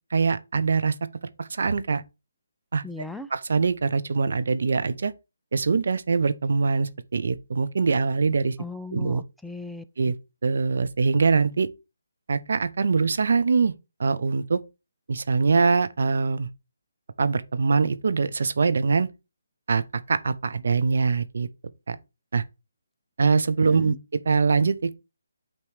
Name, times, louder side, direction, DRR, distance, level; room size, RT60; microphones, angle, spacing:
voice 1, 0.1-2.0 2.7-2.8 3.3-5.1 5.5-8.6 8.9-9.2 10.0-10.1 10.4-11.7 12.3-13.7 14.0-14.6 15.1-16.5 17.2-19.1 19.7-19.8 20.1-21.5 21.9-22.0 22.3-22.4 23.2-23.9 24.2-24.9, right 4 dB, 65° right, 0.7 m, -23 dB
voice 2, 2.8-3.3 8.6-10.2 23.6-24.0, left 3 dB, ahead, 0.4 m, -38 dB
8.7 x 3.1 x 4.9 m
hypercardioid pair, 160°, 0 cm